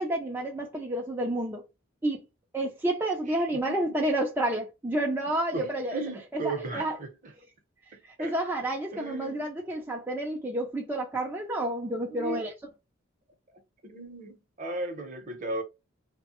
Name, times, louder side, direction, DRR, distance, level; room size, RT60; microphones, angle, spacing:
voice 1, 0.0-1.6 2.0-2.2 2.5-6.0 6.3-7.0 8.0-12.5, right 1 dB, 10° right, 0.4 m, -30 dB
voice 2, 3.3-3.8 4.9-5.0 5.5-7.3 8.2-8.4 8.9-9.4 12.1-12.5 13.8-15.6, right 3 dB, 40° right, 0.7 m, -36 dB
3.0 x 2.1 x 2.9 m
head